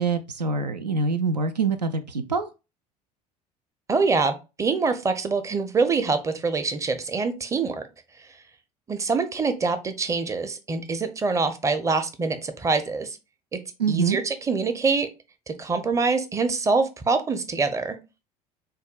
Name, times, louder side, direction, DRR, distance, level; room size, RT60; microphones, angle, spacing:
voice 1, 0.0-2.5 13.8-14.2, right 4 dB, 85° right, 0.4 m, -25 dB
voice 2, 3.9-7.9 8.9-13.2 13.5-13.6 13.9-15.1 15.6-18.0, right 4 dB, 15° right, 0.6 m, -25 dB
6.3 x 2.2 x 2.2 m
figure-of-eight pair, 65°, 20 cm